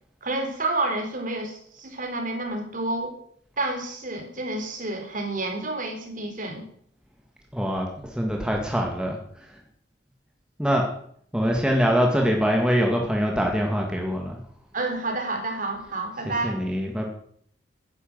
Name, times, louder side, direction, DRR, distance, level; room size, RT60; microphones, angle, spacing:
voice 1, 0.2-3.2 3.6-6.6 14.7-16.6, right 2 dB, 45° right, 3 dB, 3.8 m, -29 dB
voice 2, 7.5-9.2 10.6-10.9 11.3-14.4 16.4-17.1, equal, 5° right, 0 dB, 2.0 m, -23 dB
11.5 x 10.5 x 7.9 m, 0.63 s
head